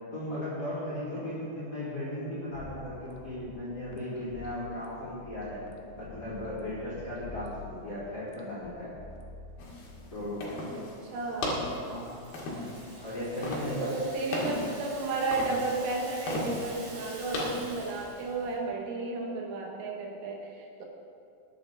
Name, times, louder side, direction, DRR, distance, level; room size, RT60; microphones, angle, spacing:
voice 1, 0.1-5.6 5.9-8.9 10.1-10.4 11.8-12.1 13.0-13.9, left 1 dB, 20° left, -9 dB, 3.6 m, -36 dB
sound 1, 2.5-10.3, left 3 dB, 75° left, 3.3 m, -48 dB
sound 2, 9.6-18.6, left 1 dB, 55° left, 3.3 m, -37 dB
voice 2, 10.7-11.6 13.8-20.9, right 3 dB, 75° right, 0 dB, 3.8 m, -33 dB
Rattle (instrument), 11.4-18.3, right 2 dB, 60° right, 4.9 m, -48 dB
20.5 x 8.8 x 4.0 m, 2.5 s
omnidirectional pair, 5.8 m